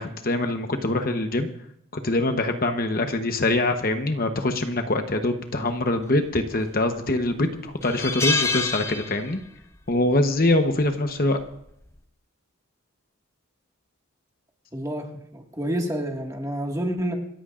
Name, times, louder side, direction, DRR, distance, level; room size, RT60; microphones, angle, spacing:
voice 1, 0.0-1.5 2.0-9.4 9.9-11.4, left 2 dB, 40° left, 6 dB, 1.0 m, -24 dB
sound 1, 6.4-6.9 7.3-7.4 7.8-9.6 9.9-10.1 11.4-11.7, left 4 dB, 10° left, 0.7 m, -27 dB
voice 2, 14.7-17.2, right 1 dB, 15° right, 1 dB, 1.8 m, -29 dB
27.5 x 14.0 x 2.5 m, 0.77 s
head